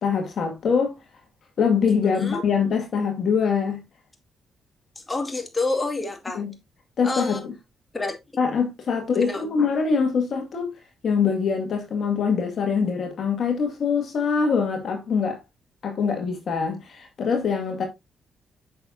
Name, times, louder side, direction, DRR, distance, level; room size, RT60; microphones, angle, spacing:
voice 1, 0.0-1.0 1.6-3.8 6.3-6.5 7.0-7.5 8.4-10.7 11.0-15.4 15.8-17.8, left 6 dB, 65° left, 2.1 m, -23 dB
voice 2, 5.0-6.4 7.0-7.4 7.9-8.2 9.2-9.5, left 2 dB, 25° left, 2.4 m, -28 dB
7.8 x 6.4 x 2.7 m
supercardioid pair, 55°, 0 cm